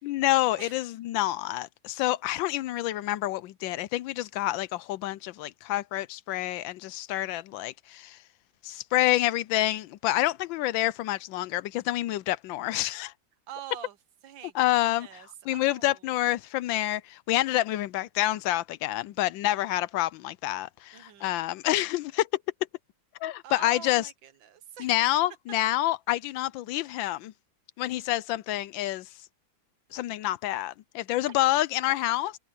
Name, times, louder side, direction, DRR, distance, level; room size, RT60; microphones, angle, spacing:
voice 1, 0.0-8.2 8.6-13.1 14.5-15.1 15.5-22.3 23.2-24.1 24.8-27.3 27.8-29.1 29.9-32.4, left 15 dB, 80° left, 1.3 m, -28 dB
voice 2, 13.5-14.0 14.2-16.1 20.9-21.3 23.4-24.9, right 10 dB, 75° right, 1.8 m, -45 dB
omnidirectional pair, 2.1 m